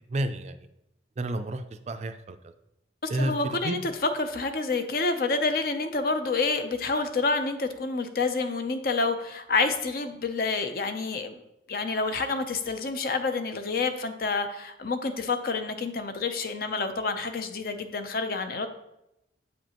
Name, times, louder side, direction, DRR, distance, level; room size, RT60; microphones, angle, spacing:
voice 1, 0.1-0.6 1.2-2.2 3.1-3.8, right 1 dB, 40° right, 9 dB, 0.4 m, -30 dB
voice 2, 3.0-11.4 11.7-18.7, left 3 dB, 55° left, 8 dB, 0.5 m, -28 dB
8.0 x 5.1 x 2.9 m, 0.86 s
head